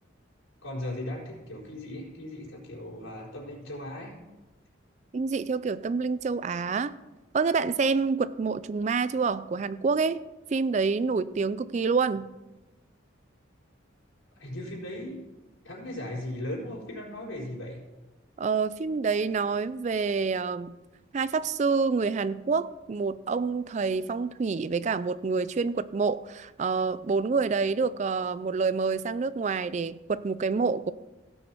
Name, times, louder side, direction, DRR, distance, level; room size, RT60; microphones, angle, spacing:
voice 1, 0.6-4.2 14.4-15.2 15.6-17.8, left 1 dB, 85° left, -5 dB, 4.6 m, -37 dB
voice 2, 5.1-6.9 7.3-10.2 10.5-12.3 18.4-20.7 21.1-30.9, right 4 dB, 35° right, 16 dB, 0.3 m, -27 dB
17.0 x 6.4 x 4.5 m, 1.1 s
head